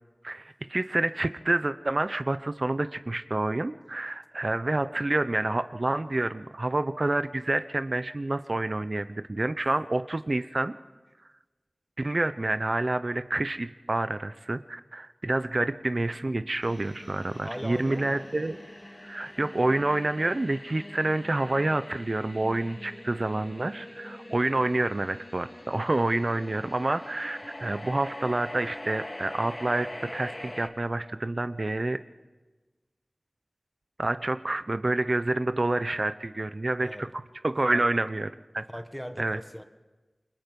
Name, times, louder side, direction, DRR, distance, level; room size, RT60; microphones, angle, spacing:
voice 1, 0.2-10.7 12.0-18.6 19.0-32.0 34.0-37.1 37.4-38.3 38.5-38.6 39.2-39.4, right 2 dB, 55° right, 11 dB, 0.7 m, -28 dB
sound 1, 16.6-30.7, left 1 dB, 30° left, 2.2 m, -43 dB
voice 2, 17.4-18.3 36.8-37.1 37.7-37.9 38.7-39.7, equal, 5° left, 8 dB, 1.5 m, -39 dB
28.5 x 21.0 x 5.4 m, 1.2 s
wide cardioid pair, 45°, 0 cm